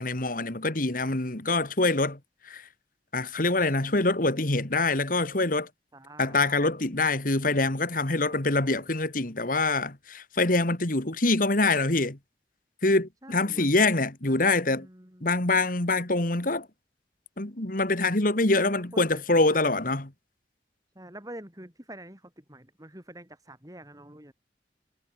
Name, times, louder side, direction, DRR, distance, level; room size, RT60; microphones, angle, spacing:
voice 1, 0.0-2.7 3.1-5.7 6.2-12.2 12.8-14.9 15.2-16.7 17.4-20.1, left 2 dB, 50° left, 2.3 m, -25 dB
voice 2, 5.9-6.6 8.2-8.9 13.2-13.8 14.3-14.4 14.6-15.3 18.5-19.7 20.9-24.3, right 1 dB, 20° right, 5.9 m, -47 dB
head